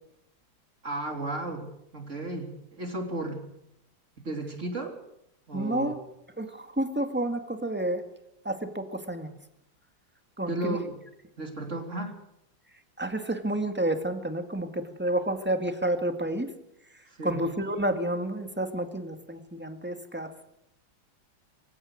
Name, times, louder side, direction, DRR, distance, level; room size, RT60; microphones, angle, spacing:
voice 1, 0.8-3.4 4.2-5.0 5.5-5.9 10.5-10.9 11.4-12.2 17.1-17.4, right 2 dB, 35° right, 3 dB, 3.7 m, -34 dB
voice 2, 5.5-6.0 6.4-8.0 8.4-9.3 10.4-10.8 13.0-16.5 16.9-20.3, right 1 dB, 5° right, 7 dB, 1.8 m, -30 dB
26.5 x 16.0 x 6.5 m, 0.81 s
omnidirectional pair, 2.2 m